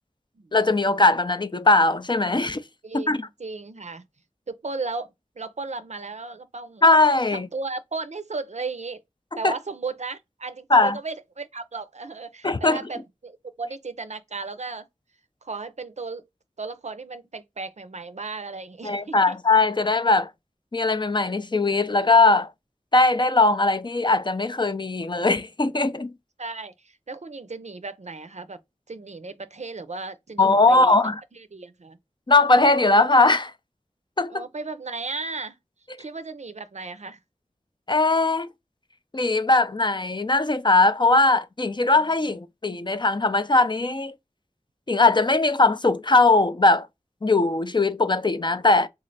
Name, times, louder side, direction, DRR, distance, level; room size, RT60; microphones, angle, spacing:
voice 1, 0.5-2.6 2.9-3.2 6.8-7.5 9.4-9.5 10.7-11.0 12.4-12.8 18.8-20.3 20.7-22.5 22.9-26.1 30.4-31.2 32.3-33.5 34.2-34.4 37.9-38.5 39.1-44.1 44.9-46.9 47.2-48.9, left 3 dB, 35° left, 0.4 m, -20 dB
voice 2, 2.8-4.0 4.5-5.1 5.4-6.8 7.3-9.0 9.4-14.9 15.4-16.2 16.6-19.4 26.4-28.6 28.9-32.0 34.3-35.6 36.0-37.2 41.9-42.0, right 3 dB, 60° right, 0.5 m, -35 dB
3.1 x 2.4 x 4.0 m
wide cardioid pair, 45°, 13 cm